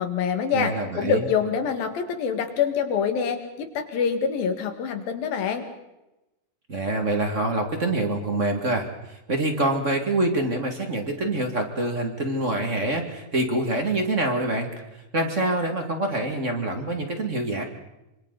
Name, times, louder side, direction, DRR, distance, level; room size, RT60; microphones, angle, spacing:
voice 1, 0.0-5.7, left 6 dB, 75° left, 6 dB, 3.7 m, -25 dB
voice 2, 0.5-1.2 6.7-14.7 15.1-17.6, right 2 dB, 25° right, 4 dB, 2.0 m, -25 dB
27.0 x 26.0 x 4.1 m, 0.96 s
omnidirectional pair, 4.2 m